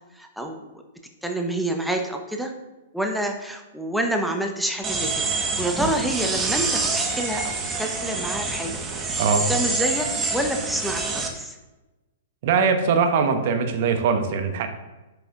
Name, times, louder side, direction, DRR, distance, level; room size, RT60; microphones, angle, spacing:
voice 1, 0.1-0.8 1.2-2.5 2.9-5.2 5.6-8.8 9.5-11.6, right 1 dB, ahead, 3 dB, 0.9 m, -28 dB
sound 1, 4.8-11.3, right 3 dB, 15° right, 1.3 m, -26 dB
voice 2, 12.4-14.7, right 5 dB, 50° right, 6 dB, 1.0 m, -21 dB
10.5 x 6.6 x 2.5 m, 1.1 s
figure-of-eight pair, 110°, 0 cm